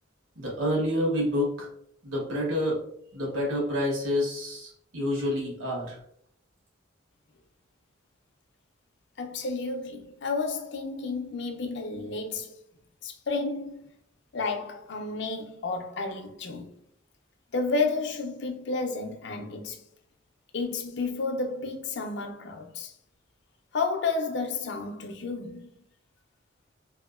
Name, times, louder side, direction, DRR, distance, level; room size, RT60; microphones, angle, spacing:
voice 1, 0.4-1.7 2.0-2.8 3.1-6.0, left 1 dB, 85° right, 1.2 m, -28 dB
voice 2, 9.2-12.5 13.0-13.7 14.3-16.7 17.5-19.8 20.5-22.9 23.7-25.7, left 3 dB, 60° left, 0.4 m, -31 dB
2.9 x 2.8 x 2.3 m
head